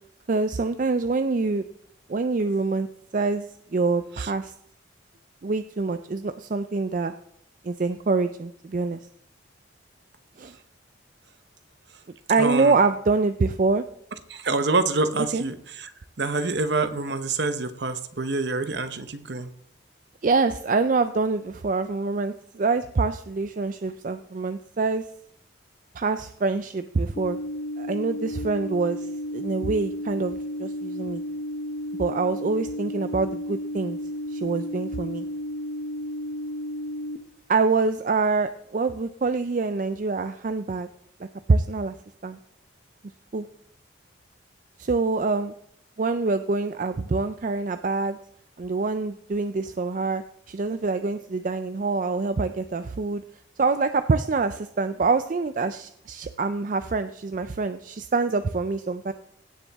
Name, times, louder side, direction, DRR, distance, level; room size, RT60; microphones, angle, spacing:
voice 1, 0.3-1.6 2.1-2.9 3.1-4.5 5.4-7.1 7.6-9.0 10.4-10.6 12.3-13.8 15.3-15.4 20.2-25.1 26.0-27.4 27.8-31.2 32.0-34.0 34.3-35.3 37.5-40.9 41.2-41.9 42.2-42.4 43.3-43.5 44.8-45.5 46.0-48.2 48.6-53.2 53.6-59.1, right 3 dB, 40° right, 10 dB, 0.4 m, -25 dB
voice 2, 12.4-12.8 14.3-15.9 16.2-19.5, right 3 dB, 60° right, 10 dB, 0.9 m, -26 dB
sound 1, 27.2-37.2, equal, 35° left, 0.7 m, -33 dB
17.0 x 7.0 x 3.5 m, 0.69 s
head